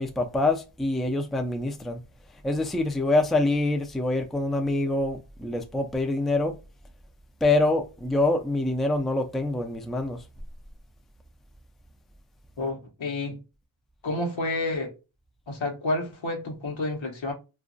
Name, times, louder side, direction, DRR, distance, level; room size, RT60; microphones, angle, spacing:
voice 1, 0.0-2.0 2.4-6.6 7.4-10.2, left 2 dB, ahead, 0.4 m, -25 dB
voice 2, 12.6-13.4 14.0-14.9 15.5-17.3, left 2 dB, 70° left, 1.0 m, -29 dB
2.8 x 2.5 x 2.5 m
cardioid pair, 65°, 48 cm